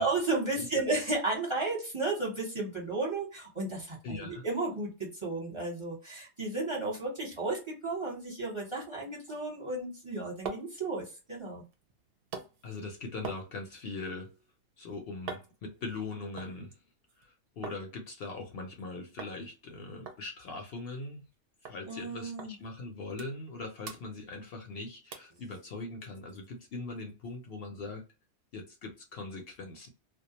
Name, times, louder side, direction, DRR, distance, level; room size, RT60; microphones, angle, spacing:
voice 1, 0.0-11.6 21.9-22.5, right 3 dB, 30° right, 0.8 m, -33 dB
voice 2, 4.0-4.4 12.6-14.4 14.8-16.8 17.2-21.2 21.6-28.0 28.5-29.9, left 3 dB, 65° left, 0.7 m, -41 dB
sound 1, 9.9-17.8 18.1-18.8 19.2-19.4 19.7-19.8 20.1-21.4 21.7-21.8 22.4-22.5 22.9-23.6 23.8-24.7 25.1-25.4 25.9-26.0, right 5 dB, 60° right, 0.7 m, -46 dB
2.3 x 2.1 x 2.8 m
omnidirectional pair, 1.2 m